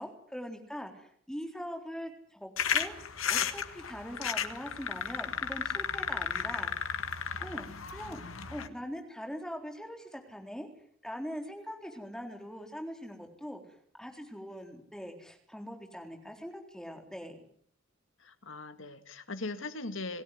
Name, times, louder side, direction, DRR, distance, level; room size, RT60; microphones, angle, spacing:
voice 1, 0.0-2.9 3.3-6.9 7.4-8.2 8.5-10.7 11.0-13.6 14.0-17.4, equal, 5° left, 3 dB, 3.9 m, -42 dB
sound 1, 2.6-8.7, left 7 dB, 90° left, 1.9 m, -34 dB
voice 2, 18.2-20.2, left 2 dB, 70° left, 10 dB, 2.0 m, -40 dB
27.5 x 17.0 x 9.5 m, 0.64 s
head